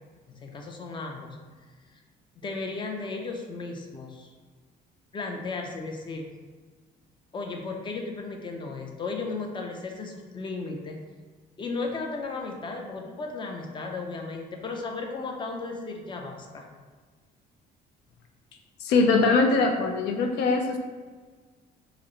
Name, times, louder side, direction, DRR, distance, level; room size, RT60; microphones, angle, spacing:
voice 1, 0.3-1.4 2.4-4.3 5.1-6.3 7.3-11.0 11.6-16.7, left 3 dB, 30° left, 2 dB, 0.5 m, -35 dB
voice 2, 18.8-20.8, left 3 dB, 85° left, 4 dB, 0.5 m, -22 dB
4.8 x 2.1 x 3.0 m, 1.5 s
cardioid pair, 110°, 17 cm